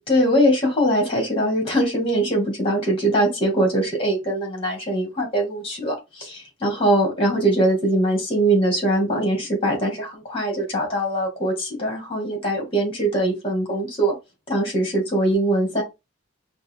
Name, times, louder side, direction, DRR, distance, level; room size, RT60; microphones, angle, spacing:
voice 1, 0.1-14.1 14.5-15.8, right 1 dB, 25° left, 2.0 m, -22 dB
5.3 x 2.3 x 3.5 m
head